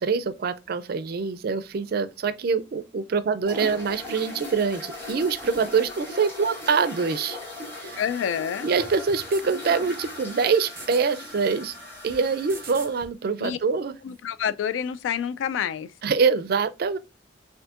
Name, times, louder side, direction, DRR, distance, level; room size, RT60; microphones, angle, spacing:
voice 1, 0.0-7.4 7.8-8.0 8.6-11.7 12.0-13.9 16.0-17.0, right 5 dB, 55° right, 0.4 m, -25 dB
sound 1, 3.4-13.1, left 2 dB, 15° left, 2.2 m, -39 dB
voice 2, 8.0-8.7 13.4-13.6 14.0-15.9, left 8 dB, 90° left, 0.3 m, -28 dB
sound 2, 9.0-9.5 10.6-11.1 12.3-13.0 14.1-14.2, right 4 dB, 15° right, 0.8 m, -46 dB
6.0 x 2.6 x 2.4 m
head